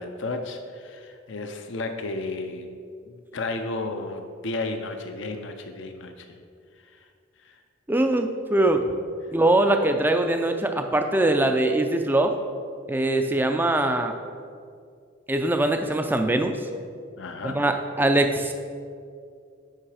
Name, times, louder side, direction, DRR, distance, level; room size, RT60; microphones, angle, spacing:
voice 1, 0.0-2.8 3.3-6.4 6.8-7.1 7.4-7.6 17.2-17.7, left 2 dB, 60° left, 6 dB, 0.5 m, -33 dB
voice 2, 7.9-8.8 9.3-12.3 12.9-14.1 15.3-16.6 17.4-18.5, right 1 dB, 10° right, 6 dB, 0.4 m, -22 dB
8.8 x 5.6 x 4.8 m, 2.3 s
head